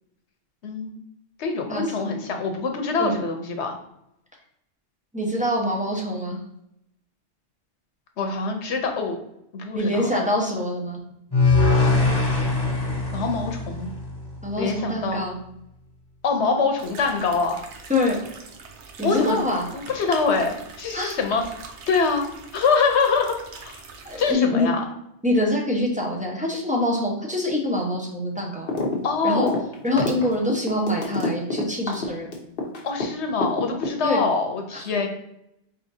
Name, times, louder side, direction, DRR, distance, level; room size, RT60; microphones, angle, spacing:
voice 1, 0.6-1.0 1.4-3.8 8.2-9.2 9.5-10.1 13.1-13.9 14.6-15.3 16.2-17.6 19.0-19.4 19.7-21.4 21.9-22.2 22.5-23.4 23.6-23.8 24.2-24.8 29.0-29.6 32.8-35.1, left 4 dB, 85° left, 4 dB, 1.1 m, -24 dB
voice 2, 1.7-2.1 3.0-3.2 5.1-6.4 9.7-11.0 14.4-15.4 17.9-18.2 19.0-19.7 20.9-21.2 24.0-24.7 25.2-28.7 29.2-29.5 29.8-32.3 34.0-34.3 34.7-34.8, left 1 dB, 10° right, -2 dB, 0.8 m, -25 dB
sound 1, 11.3-14.5, left 3 dB, 25° left, 1.1 m, -22 dB
sound 2, 16.8-24.3, right 4 dB, 90° right, 1.0 m, -43 dB
sound 3, 28.7-29.0 29.2-33.1 33.4-34.3, left 3 dB, 55° left, 1.0 m, -27 dB
4.3 x 4.0 x 2.7 m, 0.81 s
omnidirectional pair, 1.1 m